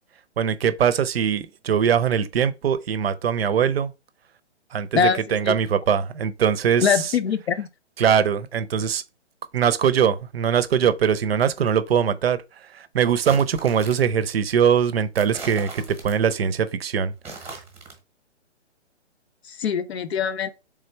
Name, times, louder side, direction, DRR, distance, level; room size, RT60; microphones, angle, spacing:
voice 1, 0.4-3.9 4.7-7.1 8.0-9.0 9.5-12.4 12.9-17.1, right 8 dB, 55° right, 0.6 m, -21 dB
voice 2, 4.9-5.6 6.8-7.7 19.5-20.5, left 7 dB, 60° left, 0.7 m, -23 dB
sound 1, 13.2-14.2 15.2-16.4 17.1-18.0, right 3 dB, 5° right, 0.9 m, -39 dB
3.7 x 3.3 x 4.4 m
hypercardioid pair, 145°, 36 cm